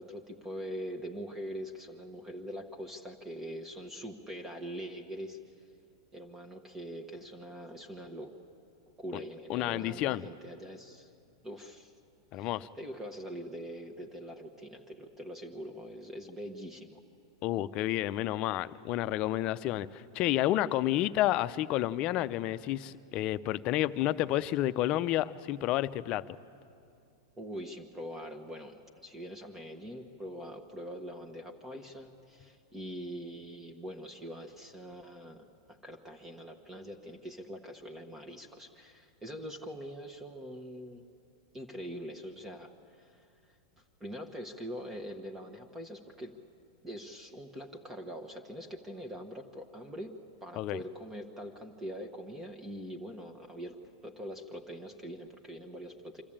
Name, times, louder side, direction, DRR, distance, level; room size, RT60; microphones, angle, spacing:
voice 1, 0.0-5.4 6.1-8.3 8.8-11.1 11.4-11.9 12.3-17.0 27.4-41.0 41.5-43.3 44.0-46.3 46.8-50.1 50.4-53.8 54.0-56.2, equal, 15° right, 4 dB, 1.3 m, -43 dB
voice 2, 9.5-10.2 12.3-12.7 17.4-26.4 50.6-50.8, left 14 dB, 45° left, 13 dB, 0.6 m, -30 dB
25.0 x 13.5 x 8.8 m, 2.5 s
hypercardioid pair, 120°, 2 cm